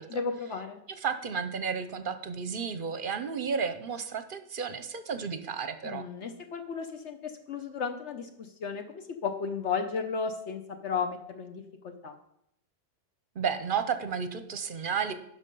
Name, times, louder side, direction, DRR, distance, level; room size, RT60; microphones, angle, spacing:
voice 1, 0.1-0.8 5.8-12.1, left 5 dB, 70° left, 6 dB, 1.1 m, -34 dB
voice 2, 0.9-6.1 13.4-15.1, right 6 dB, 50° right, 10 dB, 0.8 m, -32 dB
11.5 x 5.6 x 5.4 m, 0.76 s
omnidirectional pair, 1.3 m